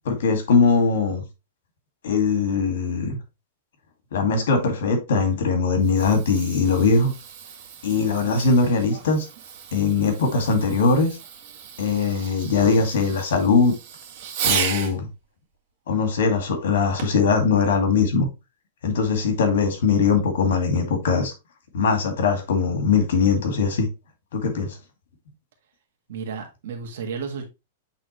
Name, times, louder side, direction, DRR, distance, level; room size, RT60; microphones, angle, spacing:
voice 1, 0.0-1.2 2.0-3.2 4.1-7.1 7.8-9.3 9.7-11.2 11.8-13.7 14.4-15.1 15.9-18.3 18.8-21.3 21.7-23.9 24.3-24.8, left 4 dB, 80° left, 2.2 m, -21 dB
Fireworks, 5.6-15.0 17.0-17.3 18.0-18.1, right 8 dB, 50° right, 1.7 m, -34 dB
voice 2, 26.1-27.5, right 5 dB, 70° right, 1.7 m, -32 dB
8.2 x 3.8 x 3.1 m
supercardioid pair, 155°, 0 cm